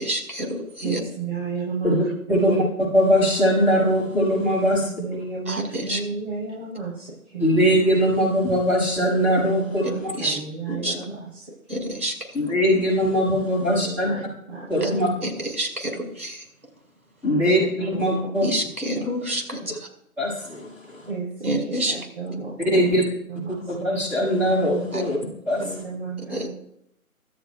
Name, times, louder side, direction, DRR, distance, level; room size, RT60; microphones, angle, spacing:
voice 1, 0.0-1.0 5.5-6.0 9.8-10.4 10.7-11.0 11.7-12.1 15.2-16.4 18.4-19.9 21.4-21.9 24.9-25.0 26.3-26.5, right 1 dB, 85° right, 2 dB, 4.9 m, -28 dB
voice 2, 0.8-1.9 2.3-2.6 4.6-7.5 9.3-11.5 13.5-14.2 14.5-15.0 15.3-15.5 15.9-16.0 17.2-18.0 18.9-19.1 19.6-19.7 21.1-21.5 21.9-22.8 23.3-23.6 25.6-26.5, right 5 dB, 45° right, -6 dB, 6.7 m, -33 dB
voice 3, 2.3-2.6 2.9-4.9 7.4-10.1 12.3-14.1 14.7-15.1 17.2-18.5 20.2-21.1 22.6-23.0 23.7-25.2 25.5-25.6, equal, 5° right, -8 dB, 5.6 m, -21 dB
25.0 x 13.5 x 2.3 m, 0.72 s
figure-of-eight pair, 145°, 44 cm